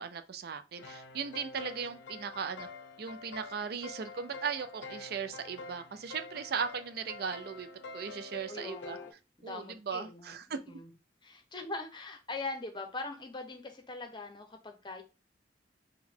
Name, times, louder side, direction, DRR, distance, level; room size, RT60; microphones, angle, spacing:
voice 1, 0.0-2.7 3.0-7.7 7.9-9.0 9.4-10.6, right 6 dB, 55° right, 0.4 m, -37 dB
sound 1, 0.7-9.1, left 3 dB, 80° left, 0.5 m, -47 dB
voice 2, 8.5-9.1 9.4-10.9 11.2-15.0, left 3 dB, 25° left, 0.7 m, -42 dB
3.9 x 2.2 x 4.3 m
head